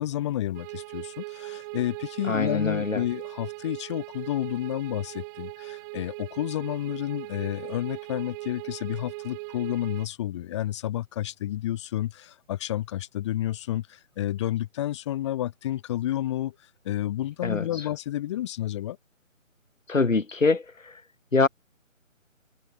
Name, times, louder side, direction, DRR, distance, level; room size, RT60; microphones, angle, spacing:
voice 1, 0.0-16.5 16.8-19.0, left 13 dB, 20° left, 4.8 m, -30 dB
sound 1, 0.5-10.1, right 29 dB, 15° right, 5.9 m, -39 dB
voice 2, 2.3-3.0 17.4-17.6 19.9-20.6 21.3-21.5, left 3 dB, 70° left, 2.6 m, -23 dB
figure-of-eight pair, 155°, 40 cm